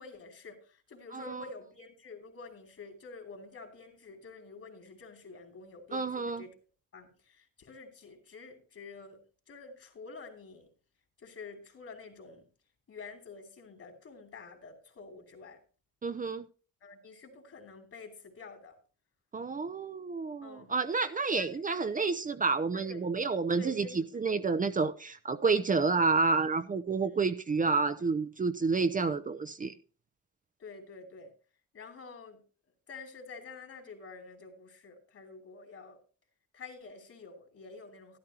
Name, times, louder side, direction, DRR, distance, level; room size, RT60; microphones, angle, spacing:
voice 1, 0.0-6.5 6.9-9.2 9.5-10.7 11.2-12.4 12.9-15.6 16.8-18.7 20.4-20.7 21.3-21.7 22.7-23.0 23.6-24.2 27.0-27.2 30.6-31.3 31.7-32.4 32.9-36.0 36.5-38.2, left 4 dB, 50° left, 3.1 m, -48 dB
voice 2, 1.1-1.4 5.9-6.4 16.0-16.5 19.3-23.9 24.1-29.7, right 4 dB, 25° right, 0.7 m, -29 dB
13.0 x 11.5 x 2.9 m
cardioid pair, 90°, 30 cm